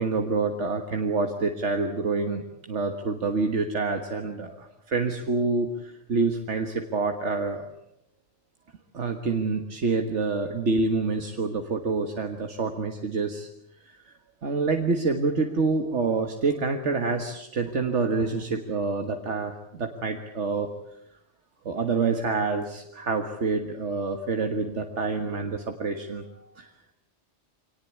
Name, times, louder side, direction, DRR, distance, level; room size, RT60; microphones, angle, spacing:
voice 1, 0.0-2.4 2.7-7.7 8.9-13.5 13.9-14.1 14.4-20.7 21.7-26.2 26.6-26.7, right 4 dB, 80° right, 4 dB, 1.8 m, -27 dB
24.0 x 19.0 x 8.4 m, 0.81 s
omnidirectional pair, 1.2 m